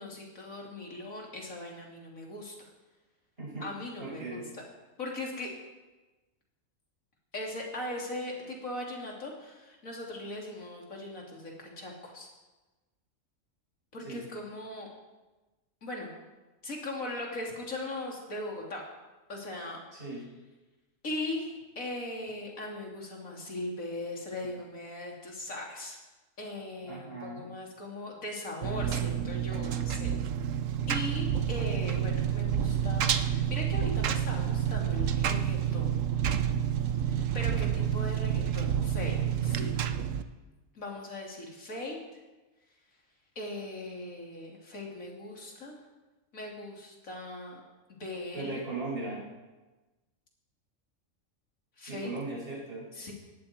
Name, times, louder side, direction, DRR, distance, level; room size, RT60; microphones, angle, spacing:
voice 1, 0.0-2.5 3.6-4.4 5.0-5.5 7.3-12.3 13.9-14.9 15.8-16.1 16.6-18.8 19.3-19.8 21.0-26.0 26.4-30.1 30.9-35.9 37.1-39.7 40.8-42.0 43.4-45.8 46.3-47.6 47.9-48.6 51.8-52.1 53.0-53.1, left 2 dB, 90° left, -1 dB, 3.4 m, -39 dB
voice 2, 4.0-4.4 14.0-14.3 19.9-20.3 26.8-27.5 48.3-49.3 51.9-52.9, right 3 dB, 45° right, -7 dB, 7.1 m, -38 dB
Engine, 28.6-40.2, right 9 dB, 75° right, 1.2 m, -29 dB
18.5 x 13.5 x 4.5 m, 1.2 s
omnidirectional pair, 1.4 m